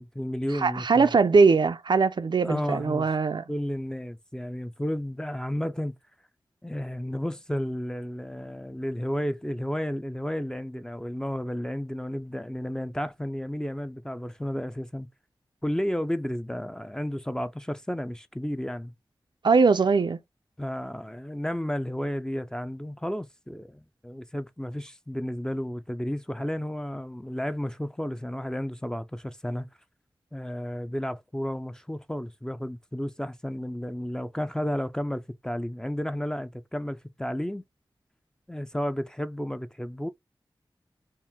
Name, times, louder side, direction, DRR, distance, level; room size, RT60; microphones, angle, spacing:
voice 1, 0.0-1.1 2.4-3.1 3.5-5.9 6.6-15.1 15.6-18.9 20.6-29.7 30.3-37.6 38.5-40.1, equal, 10° left, 0.4 m, -32 dB
voice 2, 0.6-3.4 19.4-20.2, right 4 dB, 65° right, 0.5 m, -21 dB
4.3 x 2.0 x 3.6 m
cardioid pair, 50°, 8 cm